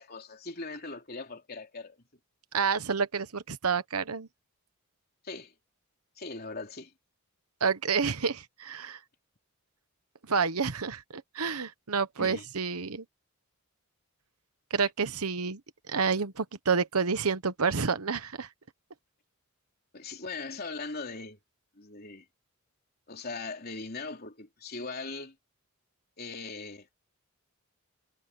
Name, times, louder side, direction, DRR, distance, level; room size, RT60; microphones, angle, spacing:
voice 1, 0.0-2.0 5.2-5.5 6.2-6.9 12.2-12.5 19.9-21.4 21.8-22.3 23.1-25.4 26.2-26.9, left 3 dB, 45° left, 3.4 m, -40 dB
voice 2, 2.5-4.3 7.6-9.0 10.3-13.0 14.7-15.6 15.9-18.5, right 5 dB, 85° right, 1.1 m, -29 dB
head